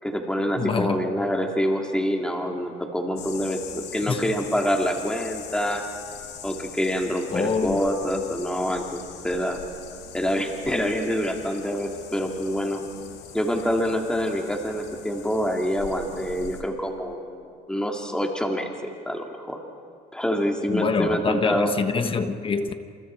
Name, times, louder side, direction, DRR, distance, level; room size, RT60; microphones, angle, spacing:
voice 1, 0.0-5.8 6.4-9.6 10.1-12.8 13.3-18.7 19.1-19.6 20.1-21.7, equal, 5° left, 2.6 m, -26 dB
voice 2, 0.6-1.0 4.1-4.2 7.3-7.8 20.7-22.7, left 5 dB, 30° left, 1.4 m, -25 dB
sound 1, 3.2-16.6, left 8 dB, 90° left, 2.4 m, -42 dB
28.5 x 27.5 x 4.7 m
cardioid pair, 110°, 17 cm